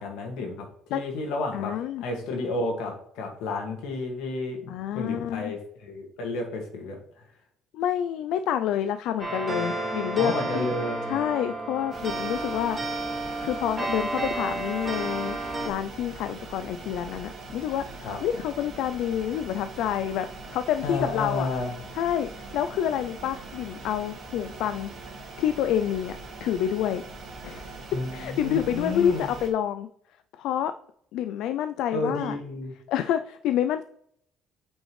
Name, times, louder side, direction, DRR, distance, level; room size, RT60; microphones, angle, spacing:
voice 1, 0.0-1.7 2.0-7.0 10.2-11.2 18.0-18.2 20.8-21.7 27.9-29.3 31.9-32.7, left 2 dB, 90° left, 2 dB, 1.9 m, -31 dB
voice 2, 1.5-2.0 4.7-5.5 7.7-10.7 11.1-12.8 13.4-15.4 15.6-21.5 21.9-24.9 25.4-27.0 27.4-27.8 28.1-29.9 30.3-30.7 31.1-32.4 32.9-33.8, left 10 dB, 70° left, 10 dB, 0.3 m, -28 dB
sound 1, 9.2-15.7, right 2 dB, 20° right, 2.1 m, -31 dB
sound 2, 11.9-29.5, right 3 dB, 40° right, 2.2 m, -42 dB
8.9 x 5.2 x 3.2 m, 0.69 s
cardioid pair, 160°, 0 cm